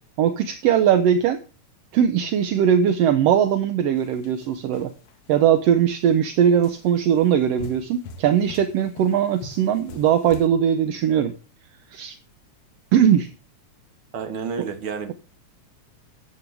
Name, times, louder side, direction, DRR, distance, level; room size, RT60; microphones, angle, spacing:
voice 1, 0.2-1.4 1.9-4.9 5.3-11.3 11.9-12.2 12.9-13.3 14.6-14.7, right 9 dB, 70° right, 1.5 m, -20 dB
sound 1, 4.0-5.4 5.9-6.1 6.6-10.5, left 4 dB, 65° left, 1.4 m, -43 dB
voice 2, 14.1-15.1, right 5 dB, 50° right, 1.9 m, -30 dB
13.0 x 8.6 x 3.4 m
omnidirectional pair, 3.5 m